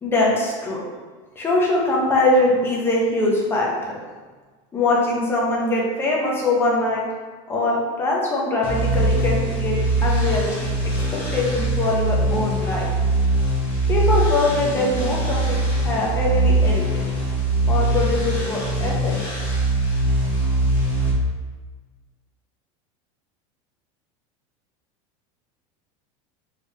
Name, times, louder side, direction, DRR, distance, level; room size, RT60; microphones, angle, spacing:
voice 1, 0.0-0.8 1.4-4.0 4.7-7.1 7.5-10.6 11.1-12.9 13.9-17.0 17.7-19.2, left 2 dB, 15° left, -3 dB, 0.6 m, -22 dB
sound 1, 8.6-21.1, right 1 dB, 45° left, 1.0 m, -22 dB
3.4 x 3.3 x 2.8 m, 1.4 s
supercardioid pair, 165°, 16 cm